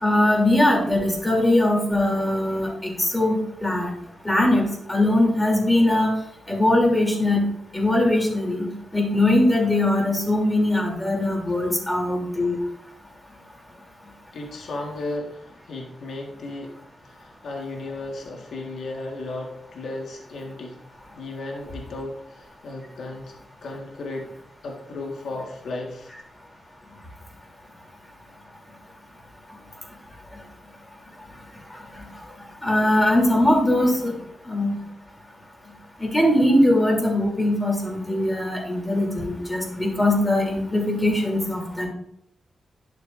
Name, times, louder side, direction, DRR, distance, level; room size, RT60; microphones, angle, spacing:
voice 1, 0.0-3.9 4.2-6.1 6.5-7.4 7.7-12.6 31.9-32.1 32.6-34.1 34.5-34.8 36.0-41.9, left 1 dB, 15° left, -1 dB, 3.0 m, -21 dB
voice 2, 14.3-16.7 17.0-20.8 21.1-24.3 24.6-26.1, left 2 dB, 75° left, 0 dB, 1.6 m, -35 dB
11.5 x 6.7 x 2.6 m, 0.75 s
cardioid pair, 95°, 0 cm